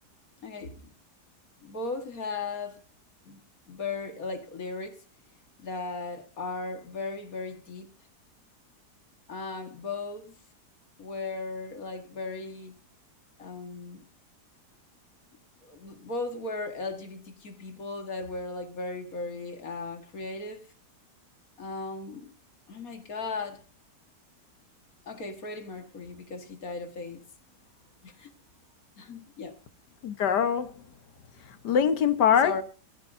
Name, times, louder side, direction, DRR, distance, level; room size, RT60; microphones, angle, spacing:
voice 1, 0.4-0.9 1.6-2.8 3.3-3.4 3.7-5.0 5.6-7.9 9.3-10.4 11.0-12.8 13.4-14.1 15.6-20.7 21.6-22.3 22.7-23.6 25.0-27.2 28.0-28.3 29.0-29.6 32.4-32.6, left 3 dB, 55° left, 2.2 m, -37 dB
voice 2, 30.0-30.8 31.6-32.5, left 8 dB, 75° left, 1.8 m, -23 dB
19.5 x 14.5 x 2.7 m
omnidirectional pair, 1.8 m